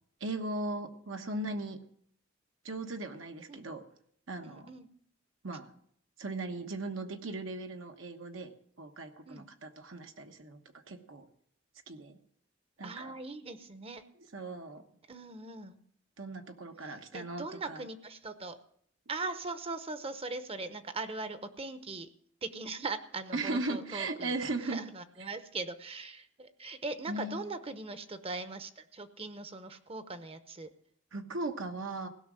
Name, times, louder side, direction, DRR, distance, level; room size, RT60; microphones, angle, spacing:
voice 1, 0.2-1.8 2.6-3.8 4.3-4.7 5.4-5.7 6.2-8.5 8.8-10.6 10.9-11.2 11.9-12.2 12.8-13.1 14.3-14.8 16.2-17.8 23.3-24.8 27.1-27.4 31.1-32.1, right 2 dB, 75° right, 5 dB, 1.2 m, -38 dB
voice 2, 4.4-4.9 9.3-9.5 12.8-14.0 15.1-15.8 16.8-18.6 19.1-22.1 22.4-30.7, right 3 dB, 30° right, 10 dB, 0.8 m, -40 dB
16.5 x 6.1 x 7.5 m, 0.65 s
head